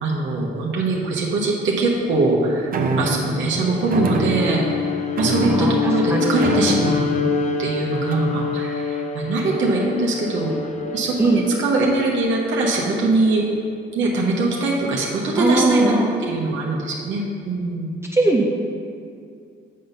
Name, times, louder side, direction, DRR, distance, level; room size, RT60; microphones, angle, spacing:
voice 1, 0.0-2.7 3.0-7.0 7.6-10.5 10.9-13.5 13.9-17.9, right 2 dB, 75° right, -2 dB, 1.0 m, -22 dB
sound 1, 2.7-3.3 3.9-4.7 5.2-6.0 6.4-7.2 8.1-8.4, right 4 dB, 45° right, 0.7 m, -25 dB
Bowed string instrument, 3.5-11.9, left 5 dB, 35° left, 0.5 m, -26 dB
voice 2, 5.5-6.5 11.2-11.4 15.4-16.2 18.1-18.5, right 2 dB, 10° right, -1 dB, 0.6 m, -19 dB
7.5 x 4.0 x 5.3 m, 2.4 s
cardioid pair, 90°, 20 cm